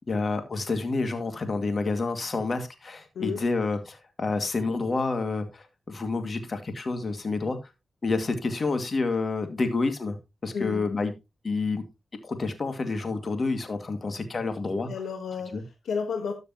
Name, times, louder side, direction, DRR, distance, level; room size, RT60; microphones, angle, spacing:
voice 1, 0.1-7.6 8.0-10.2 10.4-11.1 11.4-11.8 12.2-14.9 15.5-15.6, left 3 dB, 50° left, 2.2 m, -28 dB
voice 2, 10.5-10.9 14.9-16.3, left 6 dB, 80° left, 1.4 m, -32 dB
13.0 x 6.7 x 3.0 m
cardioid pair, 50°, 0 cm